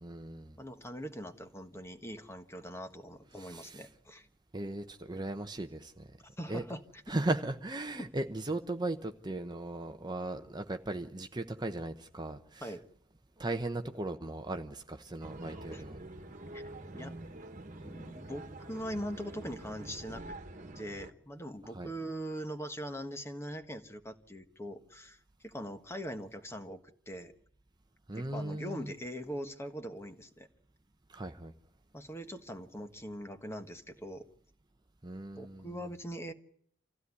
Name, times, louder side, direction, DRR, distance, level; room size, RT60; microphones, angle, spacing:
voice 1, 0.0-0.6 3.4-3.8 4.5-6.1 6.5-6.6 7.1-12.7 13.4-16.0 21.7-21.9 28.1-28.9 31.1-31.5 35.0-35.7, right 2 dB, 20° right, 6 dB, 0.9 m, -37 dB
voice 2, 0.6-4.3 6.4-7.1 12.6-12.8 15.7-15.8 16.5-16.6 16.9-17.1 17.8-20.4 20.7-27.3 28.1-30.5 31.9-34.3 35.3-36.3, equal, 15° left, 8 dB, 1.5 m, -42 dB
sound 1, 15.2-21.1, right 2 dB, 40° right, 1.6 m, -46 dB
26.0 x 15.5 x 9.7 m, 0.66 s
head